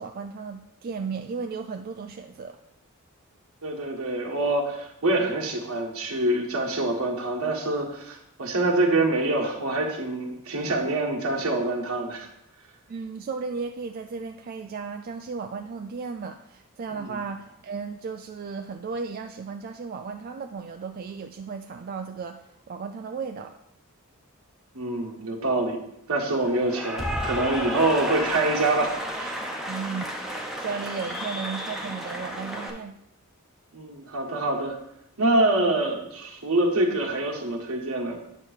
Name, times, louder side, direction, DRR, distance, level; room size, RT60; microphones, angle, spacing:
voice 1, 0.0-2.6 12.9-23.6 29.7-33.0, right 5 dB, 45° right, 5 dB, 0.3 m, -35 dB
voice 2, 3.6-12.3 16.9-17.2 24.7-25.8 26.1-29.4 33.7-34.8 35.2-38.2, right 2 dB, 75° right, 0 dB, 1.4 m, -25 dB
Cheering / Applause, 26.4-32.7, equal, ahead, 0.8 m, -32 dB
8.8 x 3.0 x 6.4 m, 0.79 s
head